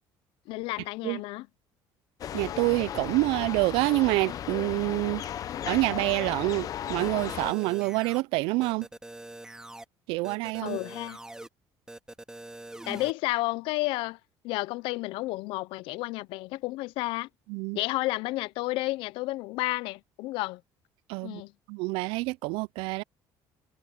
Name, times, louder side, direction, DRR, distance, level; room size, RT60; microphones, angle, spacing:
voice 1, 0.5-1.5 10.6-11.2 12.9-14.2 14.4-17.3 17.7-20.6 21.2-21.5, left 20 dB, 80° left, 0.6 m, -31 dB
sound 1, 2.2-7.5, left 10 dB, 45° left, 0.8 m, -35 dB
voice 2, 2.3-5.2 5.7-8.9 10.1-10.8 17.5-17.8 21.1-21.4 21.7-23.0, right 23 dB, 85° right, 0.4 m, -27 dB
sound 2, 7.0-8.2 8.6-9.8 10.2-11.5 11.9-13.1, right 1 dB, 10° right, 2.7 m, -43 dB
cardioid pair, 135°, 9 cm